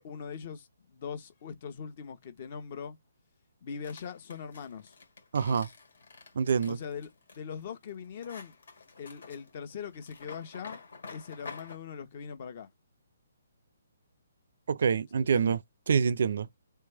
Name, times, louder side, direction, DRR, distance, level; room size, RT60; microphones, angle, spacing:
voice 1, 0.0-3.0 3.6-5.0 6.7-7.1 7.3-8.6 9.0-12.7 15.2-15.6, left 6 dB, 45° left, 1.0 m, -41 dB
sound 1, 3.8-11.8, left 4 dB, 70° left, 1.9 m, -49 dB
voice 2, 5.3-5.7 6.4-6.8 14.7-15.6 15.9-16.5, right 6 dB, 65° right, 0.4 m, -26 dB
3.4 x 3.3 x 3.4 m
hypercardioid pair, 150°, 0 cm